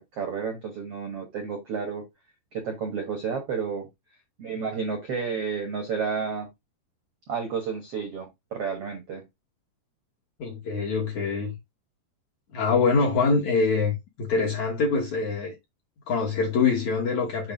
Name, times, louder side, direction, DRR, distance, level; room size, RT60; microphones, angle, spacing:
voice 1, 0.0-2.0 2.5-3.9 4.4-6.5 7.3-9.2, right 6 dB, 65° right, 1.5 m, -31 dB
voice 2, 10.4-11.6 12.5-15.6 16.1-17.5, left 4 dB, 60° left, 2.1 m, -24 dB
7.2 x 3.2 x 5.2 m
omnidirectional pair, 5.2 m